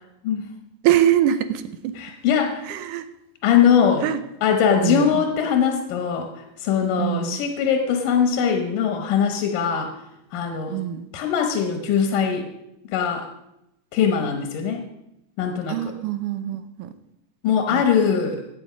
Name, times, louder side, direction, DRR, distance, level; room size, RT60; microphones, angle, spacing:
voice 1, 0.8-2.0 2.7-3.1 4.0-4.2 4.8-5.2 7.0-7.4 10.7-11.1 15.7-16.9 17.7-17.8, right 11 dB, 85° right, 11 dB, 2.4 m, -23 dB
voice 2, 2.0-2.7 3.4-4.1 4.4-6.3 6.6-9.9 10.3-10.8 11.1-12.5 12.9-13.3 13.9-14.8 15.4-15.8 17.4-18.4, left 7 dB, 90° left, 4 dB, 2.7 m, -21 dB
16.0 x 8.7 x 5.1 m, 0.86 s
omnidirectional pair, 3.6 m